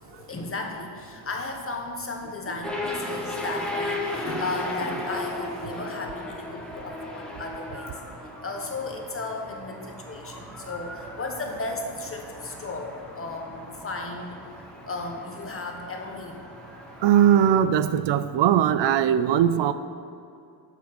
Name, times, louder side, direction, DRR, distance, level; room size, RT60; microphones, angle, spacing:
voice 1, 0.0-8.0 8.4-14.4 14.9-16.4, left 3 dB, 30° left, 2 dB, 1.3 m, -35 dB
sound 1, 2.6-17.5, left 1 dB, ahead, 1.2 m, -36 dB
voice 2, 17.0-19.7, right 9 dB, 75° right, 12 dB, 0.5 m, -20 dB
8.2 x 7.2 x 6.1 m, 2.5 s
cardioid pair, 115°, 44 cm